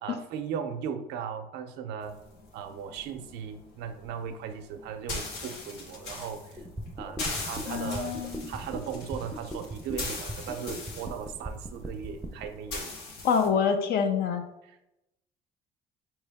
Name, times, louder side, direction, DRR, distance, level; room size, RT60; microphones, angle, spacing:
voice 1, 0.0-2.2 2.5-6.7 7.0-8.1 8.5-13.0 14.6-14.8, right 7 dB, 90° right, 7 dB, 0.6 m, -37 dB
sound 1, 2.0-13.5, left 3 dB, 85° left, 1.1 m, -40 dB
sound 2, 6.6-12.5, right 1 dB, 10° right, 0.5 m, -38 dB
voice 2, 7.7-8.5 13.2-14.4, left 6 dB, 65° left, 6 dB, 0.5 m, -26 dB
4.5 x 3.1 x 3.4 m, 0.91 s
cardioid pair, 110°, 17 cm